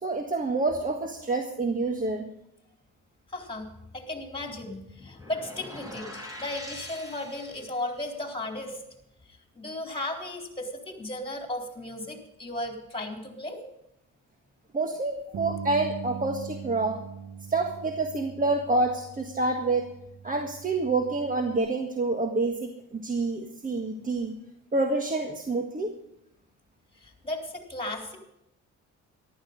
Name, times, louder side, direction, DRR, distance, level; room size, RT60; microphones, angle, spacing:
voice 1, 0.0-2.3 14.7-17.0 17.5-19.8 20.2-24.3 24.7-25.9, right 3 dB, 25° right, 4 dB, 1.7 m, -27 dB
voice 2, 3.3-3.7 3.9-6.1 6.4-8.8 9.6-13.6 27.0-28.2, left 1 dB, 15° left, 3 dB, 4.0 m, -35 dB
sound 1, 5.2-8.0, equal, 10° right, 3.9 m, -43 dB
Bass guitar, 15.3-21.6, right 7 dB, 65° right, 1.7 m, -41 dB
14.5 x 12.5 x 5.3 m, 0.84 s
cardioid pair, 90°, 30 cm